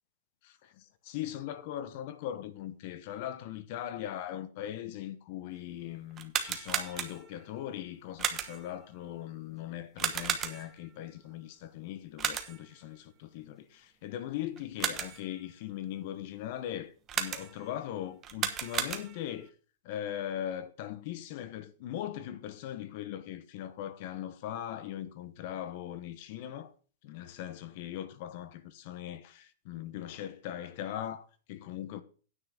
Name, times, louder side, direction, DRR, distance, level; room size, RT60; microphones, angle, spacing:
voice 1, 0.4-19.5 19.8-26.7 27.0-32.0, left 11 dB, 50° left, 1.1 m, -40 dB
sound 1, 6.1-7.4 8.2-8.8 10.0-10.9 12.2-12.7 14.6-15.3 17.1-17.7 18.2-19.4, right 8 dB, 25° right, 1.1 m, -34 dB
9.6 x 5.8 x 6.6 m
supercardioid pair, 155°, 0 cm